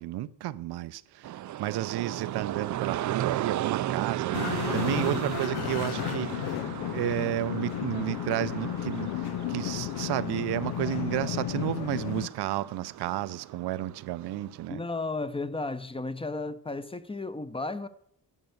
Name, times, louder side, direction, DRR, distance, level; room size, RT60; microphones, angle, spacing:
voice 1, 0.0-6.6 6.9-9.1 9.5-14.8, right 14 dB, 90° right, 0.7 m, -32 dB
sound 1, 1.2-14.7, right 12 dB, 50° right, 0.4 m, -35 dB
sound 2, 4.3-12.3, left 14 dB, 80° left, 0.5 m, -33 dB
voice 2, 14.7-17.9, left 3 dB, 15° left, 0.7 m, -34 dB
11.0 x 8.1 x 7.9 m
cardioid pair, 115°, 38 cm